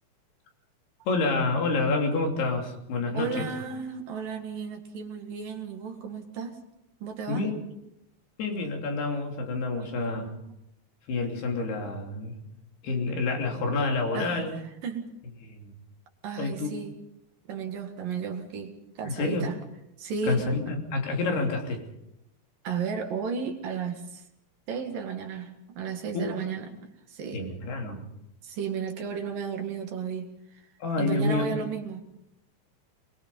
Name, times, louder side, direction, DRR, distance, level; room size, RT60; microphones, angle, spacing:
voice 1, 1.1-3.5 7.3-7.5 8.4-10.3 11.1-12.4 12.8-14.5 15.5-15.7 16.4-16.7 19.0-19.5 20.3-21.8 26.1-26.3 27.3-28.0 30.8-31.5, left 3 dB, 75° left, 2 dB, 5.0 m, -28 dB
voice 2, 3.1-6.6 7.0-7.5 9.8-10.5 14.1-15.1 16.2-16.9 17.5-19.6 20.0-20.7 22.6-24.2 24.7-26.7 27.1-27.6 28.4-30.7 31.0-32.0, right 6 dB, 60° right, 4 dB, 3.3 m, -34 dB
23.5 x 21.5 x 5.4 m, 0.85 s
omnidirectional pair, 4.6 m